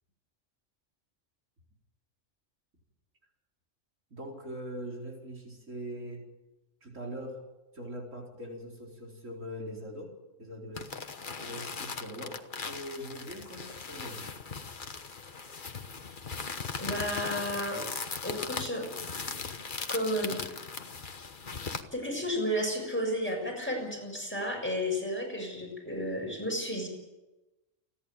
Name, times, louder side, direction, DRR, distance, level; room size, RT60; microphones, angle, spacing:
voice 1, 4.1-6.2 6.8-7.4 7.7-11.1 11.5-14.3 21.7-21.8, equal, 85° right, -1 dB, 4.7 m, -42 dB
sound 1, 10.8-21.8, left 5 dB, 40° left, 1.3 m, -39 dB
voice 2, 16.8-17.9 18.2-18.9 19.9-20.4 21.9-26.9, equal, 10° left, 0 dB, 6.7 m, -32 dB
29.0 x 11.0 x 9.0 m, 1.1 s
omnidirectional pair, 1.3 m